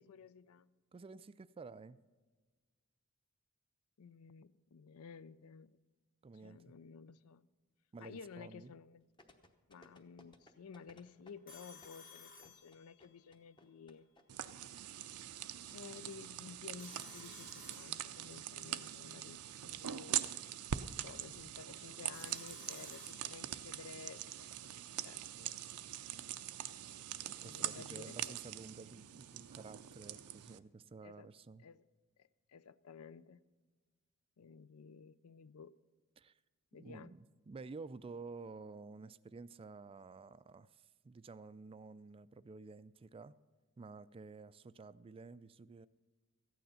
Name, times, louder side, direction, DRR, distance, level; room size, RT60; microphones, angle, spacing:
voice 1, 0.0-0.8 4.0-5.8 6.3-7.5 8.0-9.1 9.7-14.1 15.7-20.4 21.0-25.5 27.4-28.4 31.0-31.3 31.6-31.8 32.2-33.4 34.4-35.7 36.7-37.1, left 5 dB, 75° left, 0.4 m, -54 dB
voice 2, 0.9-2.0 6.2-6.6 7.9-8.7 27.4-31.6 36.2-36.4 36.8-43.4 43.8-45.9, right 4 dB, 25° right, 0.3 m, -51 dB
sound 1, 9.2-14.2 14.5-14.6, left 1 dB, 20° left, 0.9 m, -62 dB
Telephone, 11.5-13.3 16.8-18.5 22.1-23.8, left 4 dB, 40° left, 1.5 m, -57 dB
sound 2, 14.3-30.6, right 11 dB, 80° right, 0.5 m, -43 dB
14.0 x 9.3 x 5.7 m
head